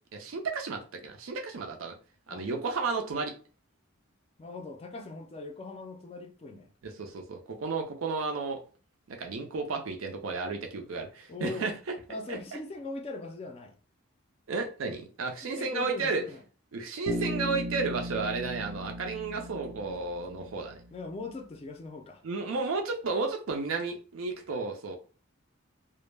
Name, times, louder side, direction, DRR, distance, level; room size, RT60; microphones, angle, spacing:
voice 1, 0.1-1.9 2.3-3.3 6.8-8.6 9.1-11.9 12.3-12.4 14.5-16.2 16.7-20.8 22.2-25.0, right 4 dB, 85° right, 0.5 m, -33 dB
voice 2, 4.4-6.7 11.3-11.7 12.1-13.8 15.4-16.4 20.9-22.2, left 3 dB, 30° left, 0.3 m, -40 dB
Bass guitar, 17.1-20.9, equal, 40° right, 0.6 m, -37 dB
2.1 x 2.0 x 3.1 m
head